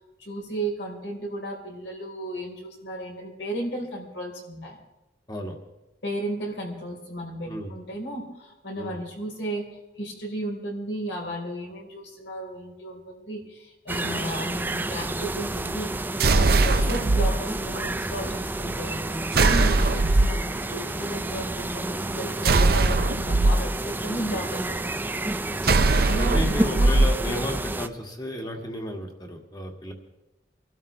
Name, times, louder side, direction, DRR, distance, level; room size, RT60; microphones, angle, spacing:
voice 1, 0.2-4.8 6.0-15.9 16.3-19.0 19.3-24.7 26.1-26.9, right 1 dB, 80° left, -1 dB, 4.3 m, -34 dB
sound 1, 13.9-27.9, right 2 dB, 10° right, 0.4 m, -30 dB
sound 2, 16.2-17.3 19.3-20.4 22.4-23.5 25.6-27.1, right 2 dB, 55° right, 0.7 m, -20 dB
voice 2, 16.5-16.8 21.9-22.2 24.3-24.8 25.4-25.6 26.2-29.9, left 1 dB, 25° left, 2 dB, 1.9 m, -34 dB
25.5 x 12.5 x 3.3 m, 1.0 s
head